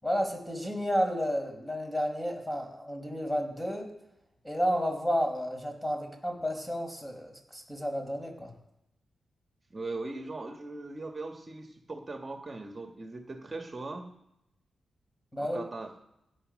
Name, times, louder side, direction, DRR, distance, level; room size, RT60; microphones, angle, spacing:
voice 1, 0.0-3.9 4.4-8.5 15.3-15.6, equal, 10° left, 3 dB, 4.8 m, -31 dB
voice 2, 9.7-14.1 15.4-15.9, right 3 dB, 35° right, 4 dB, 1.8 m, -39 dB
16.0 x 8.5 x 6.6 m, 0.85 s
cardioid pair, 65°, 0 cm